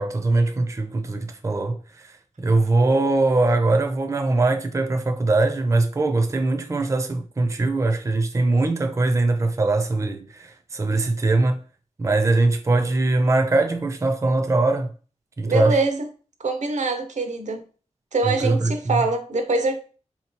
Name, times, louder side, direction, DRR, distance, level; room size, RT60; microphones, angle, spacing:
voice 1, 0.0-1.8 2.4-11.6 12.0-14.9 15.4-15.8 18.3-19.0, right 2 dB, 25° right, 0.4 m, -21 dB
voice 2, 15.4-16.0 16.4-17.6 18.1-19.8, right 3 dB, 80° right, 0.6 m, -24 dB
4.0 x 2.8 x 2.9 m
wide cardioid pair, 100°, 12 cm